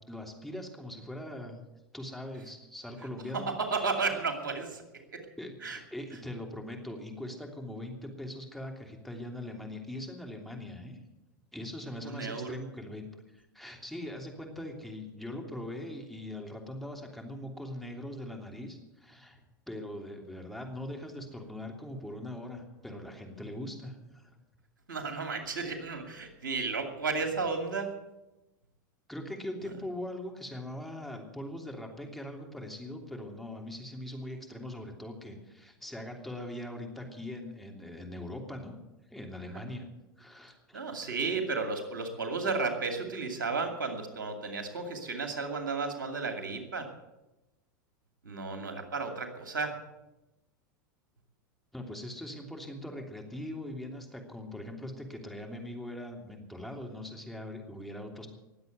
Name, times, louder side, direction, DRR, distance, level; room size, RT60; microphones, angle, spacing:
voice 1, 0.0-1.6 1.9-3.5 5.4-11.0 11.5-13.0 13.3-19.4 19.7-24.4 29.1-38.8 39.1-39.9 40.2-40.8 51.7-58.3, left 1 dB, ahead, 1 dB, 3.0 m, -41 dB
voice 2, 3.3-5.2 5.6-5.8 12.0-12.6 24.9-27.9 40.7-46.9 48.2-49.8, right 4 dB, 85° right, 4 dB, 2.5 m, -33 dB
20.0 x 8.0 x 8.0 m, 1.0 s
hypercardioid pair, 95°, 11 cm